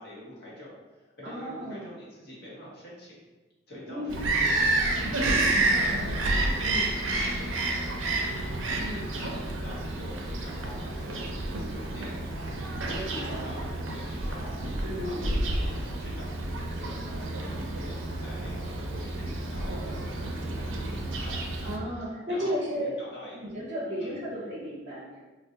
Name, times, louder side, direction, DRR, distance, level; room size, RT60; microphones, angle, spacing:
voice 1, 0.0-3.2 3.7-6.9 7.2-8.8 9.1-23.5 24.0-24.2, left 1 dB, 55° left, -6 dB, 1.0 m, -46 dB
voice 2, 1.2-1.9 3.9-4.2 6.6-6.9 8.8-9.1 12.8-13.5 14.8-15.6 21.6-22.9 23.3-25.2, equal, 40° right, -6 dB, 0.6 m, -34 dB
Bird vocalization bird call bird song, 4.1-21.8, right 2 dB, 80° right, 0.4 m, -30 dB
3.8 x 2.0 x 2.7 m, 1.2 s
head